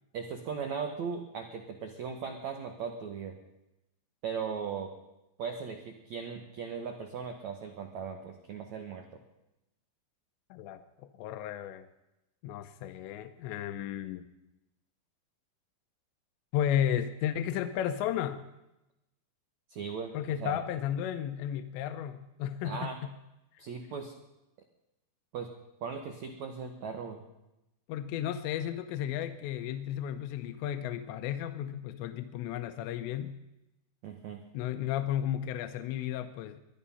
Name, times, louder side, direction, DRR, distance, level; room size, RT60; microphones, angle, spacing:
voice 1, 0.1-3.4 4.2-4.9 5.4-9.0 19.7-20.1 20.4-20.6 22.6-23.0 23.6-24.1 25.3-25.5 25.8-27.2 34.0-34.4, right 6 dB, 90° right, 4 dB, 1.6 m, -38 dB
voice 2, 10.5-11.9 12.4-14.2 16.5-18.5 20.1-23.2 27.9-33.4 34.5-36.6, left 10 dB, 85° left, 9 dB, 2.9 m, -33 dB
22.0 x 11.5 x 5.6 m, 0.93 s
omnidirectional pair, 5.1 m